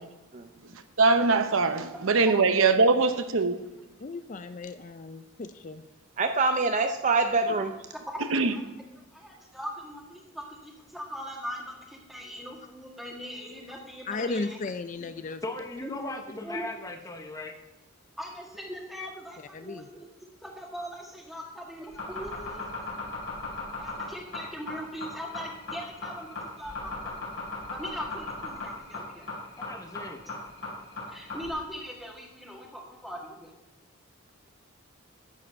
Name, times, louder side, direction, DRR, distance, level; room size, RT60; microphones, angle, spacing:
voice 1, 1.0-3.6 8.3-8.5, right 4 dB, 75° right, 9 dB, 0.8 m, -22 dB
voice 2, 4.0-5.8 14.1-15.4 19.5-19.9, left 3 dB, 35° left, 10 dB, 0.4 m, -35 dB
voice 3, 6.2-7.7, right 3 dB, 35° right, 6 dB, 0.5 m, -25 dB
voice 4, 7.9-8.7 9.1-14.6 15.0-15.1 15.8-16.1 16.4-16.8 18.2-20.1 20.4-22.7 23.7-27.2 27.7-29.3 31.1-33.5, equal, ahead, -1 dB, 1.7 m, -40 dB
voice 5, 15.4-17.6 29.6-30.2, left 2 dB, 15° left, 4 dB, 0.9 m, -38 dB
sound 1, 21.8-31.5, left 3 dB, 55° left, 3.7 m, -36 dB
10.5 x 7.6 x 5.3 m, 0.99 s
head